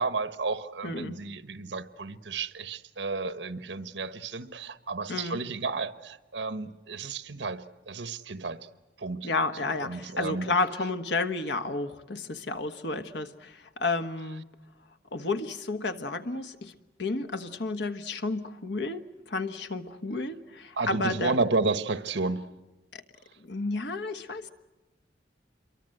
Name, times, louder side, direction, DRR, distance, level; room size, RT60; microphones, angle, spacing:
voice 1, 0.0-8.7 9.0-9.3 9.6-10.5 20.7-22.5, right 3 dB, 85° right, 1.2 m, -32 dB
voice 2, 0.8-1.2 5.1-5.4 9.2-14.4 15.1-16.7 17.0-21.3 22.9-23.0 23.4-24.5, left 3 dB, 75° left, 1.4 m, -31 dB
28.0 x 23.5 x 7.9 m
head